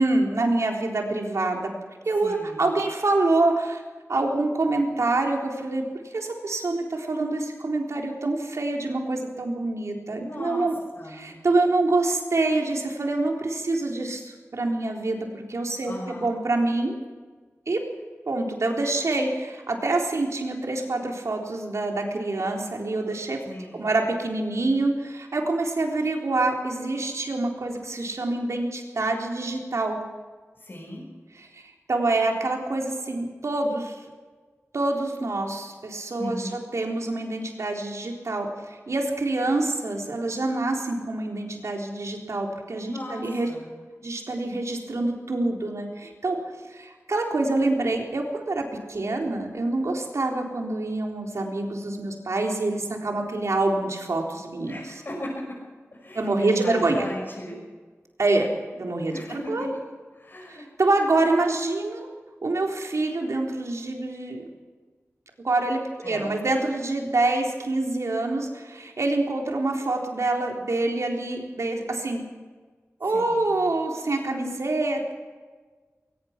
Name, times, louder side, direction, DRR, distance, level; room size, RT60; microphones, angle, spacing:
voice 1, 0.0-1.7 2.1-3.8 4.1-5.8 6.1-10.7 11.1-17.0 17.7-17.8 18.3-23.4 23.7-30.0 31.5-31.6 31.9-34.0 34.7-43.5 44.0-54.8 56.1-57.0 58.2-58.5 58.8-59.7 60.5-62.1 62.4-64.4 65.4-72.2 73.0-75.1, right 2 dB, 75° right, 1 dB, 3.9 m, -26 dB
voice 2, 2.2-2.7 10.2-10.7 10.9-11.3 15.8-16.3 23.5-23.9 30.6-31.0 36.2-36.6 42.8-43.7 54.7-55.6 55.9-57.6 59.1-59.7 60.1-60.6 66.0-66.4 73.1-73.5, left 1 dB, 45° left, -4 dB, 6.1 m, -37 dB
22.0 x 20.0 x 6.1 m, 1.4 s
wide cardioid pair, 85°, 5 cm